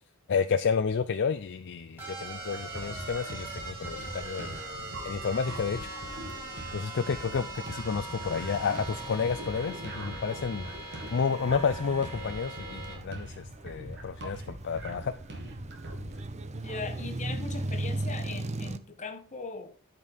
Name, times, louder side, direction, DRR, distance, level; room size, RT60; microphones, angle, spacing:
voice 1, 0.3-4.6 5.0-5.9 6.7-10.7 11.1-15.1, left 5 dB, 55° left, 0.5 m, -30 dB
sound 1, 2.0-13.0, right 2 dB, 10° right, 4.0 m, -41 dB
sound 2, 2.0-18.8, right 2 dB, 30° right, 0.6 m, -40 dB
sound 3, 2.5-16.3, right 1 dB, 50° right, 1.9 m, -43 dB
voice 2, 16.6-19.9, left 4 dB, 35° left, 1.3 m, -39 dB
12.5 x 5.3 x 4.2 m
head